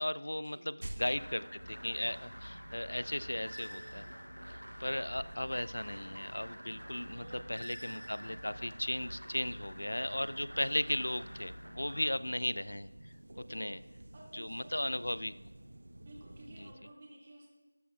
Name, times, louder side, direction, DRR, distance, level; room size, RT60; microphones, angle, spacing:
voice 1, 0.0-4.0 4.5-12.9 13.5-13.8 14.3-15.3 16.6-16.7, left 1 dB, 65° left, 16 dB, 0.4 m, -36 dB
sound 1, 0.8-16.7, right 1 dB, 55° right, 1.0 m, -52 dB
sound 2, 1.1-12.1, equal, 85° right, 0.8 m, -48 dB
voice 2, 7.0-7.7 10.5-11.3 11.8-12.1 13.3-14.9 16.0-17.5, right 1 dB, 25° right, -3 dB, 2.2 m, -54 dB
16.5 x 14.0 x 2.4 m, 1.2 s
figure-of-eight pair, 170°, 0 cm